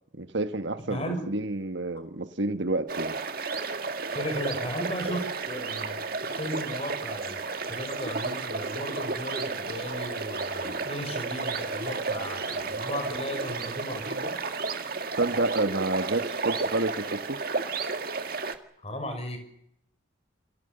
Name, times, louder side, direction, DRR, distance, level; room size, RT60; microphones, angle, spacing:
voice 1, 0.1-3.2 15.2-17.4, right 2 dB, 65° right, 1.5 m, -29 dB
voice 2, 0.9-1.2 4.1-14.3 18.8-19.4, equal, 30° left, 6.0 m, -36 dB
sound 1, 2.9-18.5, right 4 dB, 50° right, 1.9 m, -32 dB
29.5 x 20.5 x 6.9 m
head